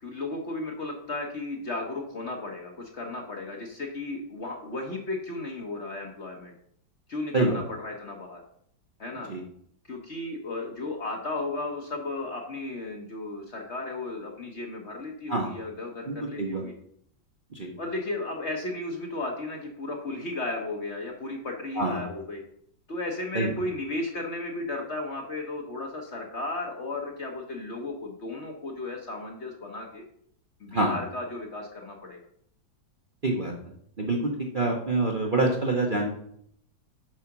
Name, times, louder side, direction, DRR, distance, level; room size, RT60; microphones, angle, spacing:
voice 1, 0.0-6.5 7.1-8.4 9.0-9.3 9.8-16.7 17.8-22.4 22.9-30.0 30.6-32.2 34.6-34.7, left 2 dB, 45° left, 1 dB, 1.0 m, -34 dB
voice 2, 16.1-16.6 17.5-17.7 21.8-22.0 23.3-23.5 30.7-30.9 33.2-33.5 34.0-36.1, right 2 dB, 40° right, 0 dB, 0.8 m, -26 dB
7.6 x 4.9 x 5.9 m, 0.68 s
omnidirectional pair, 2.1 m